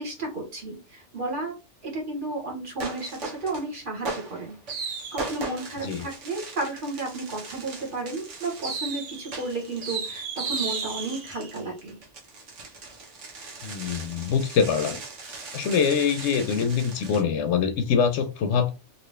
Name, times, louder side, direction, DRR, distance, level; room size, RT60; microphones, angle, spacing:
voice 1, 0.0-1.5 1.8-12.0, right 2 dB, 45° right, 1.2 m, -33 dB
sound 1, 2.8-3.6 4.0-17.2, right 4 dB, 90° right, 1.3 m, -36 dB
voice 2, 13.6-15.0 15.5-18.7, left 6 dB, 75° left, 0.9 m, -24 dB
3.3 x 2.8 x 3.1 m
omnidirectional pair, 1.2 m